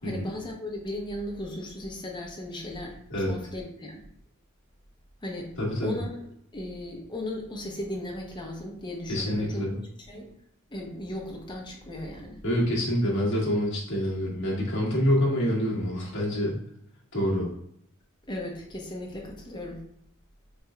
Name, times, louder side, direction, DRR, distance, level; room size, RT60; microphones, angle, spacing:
voice 1, 0.0-3.0 3.3-4.0 5.2-5.5 5.8-6.1 6.5-9.7 10.0-10.3 10.7-12.4 18.3-19.8, left 1 dB, 20° left, -1 dB, 0.9 m, -36 dB
voice 2, 5.6-6.0 9.1-9.7 12.4-16.6 17.1-17.5, equal, 60° left, -4 dB, 1.5 m, -26 dB
4.9 x 3.4 x 2.3 m, 0.74 s
head